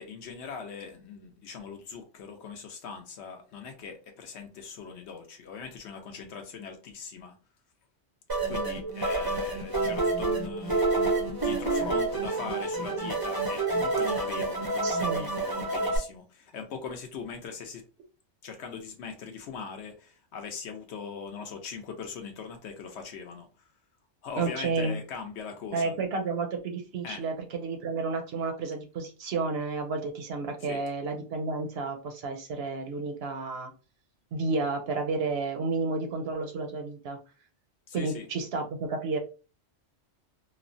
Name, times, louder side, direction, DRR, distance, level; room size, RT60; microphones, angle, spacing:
voice 1, 0.0-7.4 8.5-10.9 11.3-17.8 18.4-23.5 24.2-25.9 27.0-27.2 30.7-30.8 37.9-38.2, left 6 dB, 70° left, 0.8 m, -40 dB
sound 1, 8.3-16.0, right 3 dB, 30° right, 0.4 m, -28 dB
voice 2, 14.8-15.3 24.4-25.0 25.7-33.7 34.3-37.2 37.9-39.2, right 4 dB, 65° right, 0.7 m, -31 dB
3.0 x 2.1 x 2.5 m
omnidirectional pair, 1.3 m